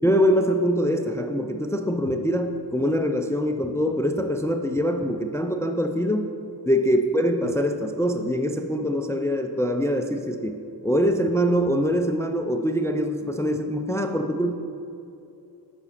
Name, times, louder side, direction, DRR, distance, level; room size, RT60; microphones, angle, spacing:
voice 1, 0.0-6.3 6.7-14.5, equal, 5° left, 6 dB, 0.4 m, -24 dB
7.3 x 4.4 x 6.6 m, 2.7 s
cardioid pair, 60°, 44 cm